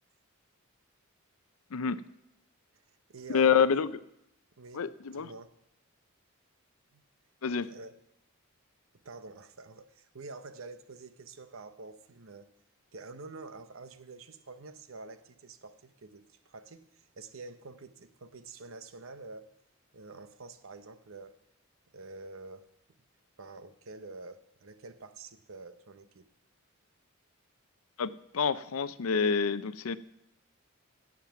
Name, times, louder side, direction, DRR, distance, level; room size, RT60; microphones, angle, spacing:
voice 1, 1.7-2.0 3.3-3.9 4.7-5.3 7.4-7.7 28.0-30.0, left 6 dB, 80° left, 0.5 m, -27 dB
voice 2, 2.9-3.8 4.6-4.8 5.1-5.5 6.9-7.0 7.7-7.9 9.0-12.5 12.9-19.5 19.9-21.4 21.9-22.7 23.4-26.3, right 3 dB, 70° right, 0.8 m, -47 dB
16.5 x 7.3 x 5.8 m
head